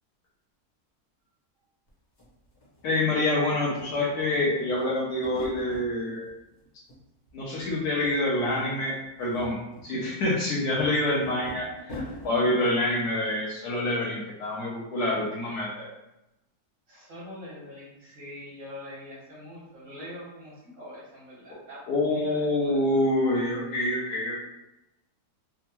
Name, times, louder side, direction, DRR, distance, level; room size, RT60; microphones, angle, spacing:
sound 1, 1.9-2.0 2.2-3.3 3.6-5.9 6.3-7.0 7.3-8.1 8.4-8.5 9.0-12.3, left 1 dB, 40° left, 1.1 m, -43 dB
voice 1, 2.8-6.2 7.3-8.9 9.2-15.9 21.9-24.3, left 1 dB, 75° left, -6 dB, 1.2 m, -26 dB
voice 2, 16.9-21.8 22.1-22.8, left 1 dB, 50° right, -7 dB, 1.3 m, -43 dB
3.5 x 2.2 x 2.9 m, 0.93 s
omnidirectional pair, 1.7 m